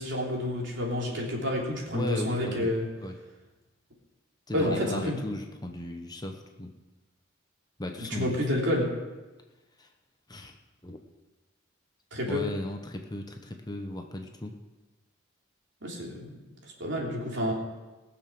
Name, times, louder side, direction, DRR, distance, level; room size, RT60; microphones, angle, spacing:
voice 1, 0.0-2.9 4.5-5.2 8.0-8.9 12.1-12.4 15.8-16.3 16.8-17.5, left 1 dB, 65° right, -2 dB, 3.3 m, -29 dB
voice 2, 1.9-2.7 3.0-3.2 4.5-6.7 7.8-8.4 9.8-9.9 10.3-10.5 10.8-11.0 12.3-14.6, left 1 dB, 20° left, 3 dB, 0.9 m, -36 dB
19.5 x 7.0 x 6.2 m, 1.2 s
head